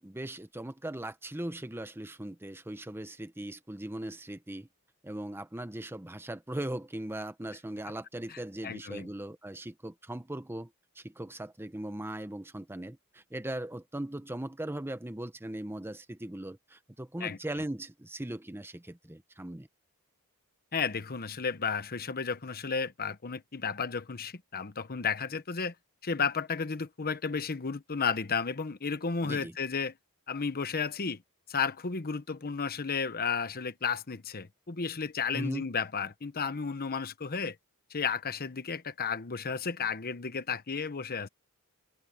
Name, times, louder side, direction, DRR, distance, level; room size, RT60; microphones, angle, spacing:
voice 1, 0.0-4.7 5.0-10.7 11.0-19.7 29.2-29.5 35.3-35.7, right 1 dB, 10° right, 0.8 m, -39 dB
voice 2, 8.3-9.1 17.2-17.4 20.7-25.7 26.0-29.9 30.3-31.2 31.5-37.6 37.9-41.3, left 5 dB, 45° left, 1.0 m, -33 dB
head